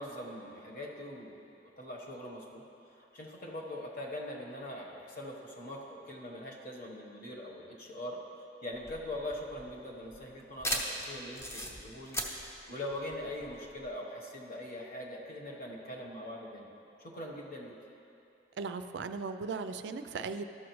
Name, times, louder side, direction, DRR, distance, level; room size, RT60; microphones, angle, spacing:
voice 1, 0.0-1.4 1.8-2.6 3.0-8.2 8.6-12.2 12.7-16.7 17.0-17.7, left 1 dB, 55° left, -2 dB, 1.2 m, -42 dB
sound 1, 8.7-13.9, equal, 15° left, 0.8 m, -38 dB
voice 2, 18.6-20.4, right 4 dB, 75° right, 9 dB, 0.4 m, -37 dB
12.5 x 6.1 x 3.1 m, 2.7 s
head